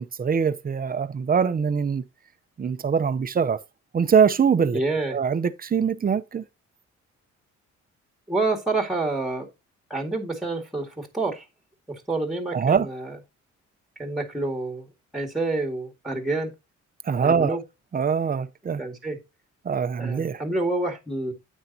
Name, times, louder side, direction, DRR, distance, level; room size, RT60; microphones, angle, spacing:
voice 1, 0.0-2.0 2.6-3.6 3.9-4.8 5.1-6.4 12.5-12.9 17.0-17.6 17.9-18.8 19.6-20.4, right 6 dB, 30° right, 0.7 m, -23 dB
voice 2, 4.7-5.2 8.3-9.5 9.9-11.4 11.9-13.2 14.0-14.9 15.1-16.5 17.2-17.6 18.8-19.2 20.0-21.3, right 2 dB, ahead, 2.0 m, -28 dB
9.5 x 8.2 x 2.8 m
cardioid pair, 110°, 29 cm